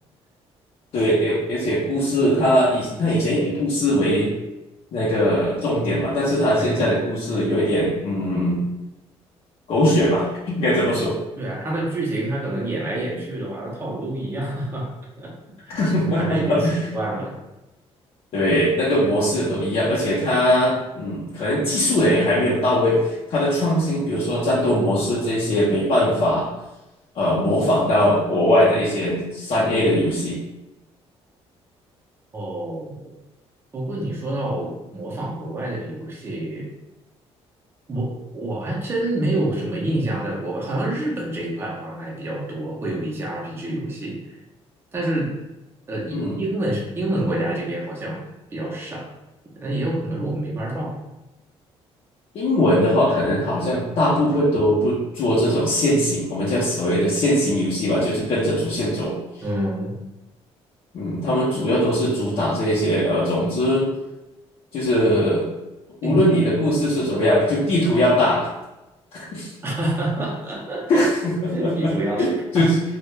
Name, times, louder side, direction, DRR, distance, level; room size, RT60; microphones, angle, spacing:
voice 1, 0.9-4.3 4.9-8.6 9.7-11.2 15.7-16.8 18.3-26.5 27.1-30.4 46.1-46.4 52.3-59.2 60.9-63.9 64.7-65.4 66.0-68.5 69.1-69.5 70.9-71.9 72.2-72.3 72.5-72.8, equal, 55° left, -7 dB, 0.5 m, -20 dB
voice 2, 6.6-7.0 11.4-15.3 15.7-17.4 32.3-33.1 33.7-36.7 37.9-44.2 44.9-45.3 45.9-48.2 48.5-49.1 49.6-51.0 59.4-59.9 66.0-66.2 66.7-67.1 69.6-71.1 71.5-72.7, right 1 dB, 20° right, -4 dB, 0.5 m, -27 dB
2.2 x 2.0 x 3.1 m, 0.99 s
cardioid pair, 130°, 11 cm